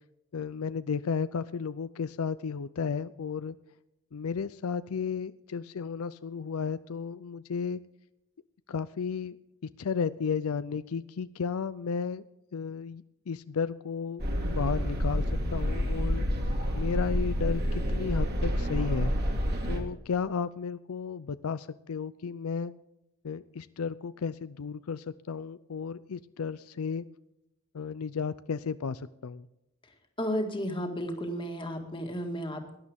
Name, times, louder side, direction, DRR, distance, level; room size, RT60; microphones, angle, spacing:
voice 1, 0.3-3.6 4.1-7.8 8.7-9.4 9.6-12.2 12.5-14.2 14.6-15.2 15.5-16.3 16.7-19.1 19.6-22.7 23.2-27.0 27.7-29.5, left 6 dB, 85° left, 14 dB, 0.5 m, -33 dB
sound 1, 14.2-19.8, equal, 50° right, 2.5 m, -28 dB
voice 2, 30.2-32.8, equal, 25° left, 3 dB, 1.9 m, -33 dB
18.5 x 11.0 x 3.6 m, 0.86 s
head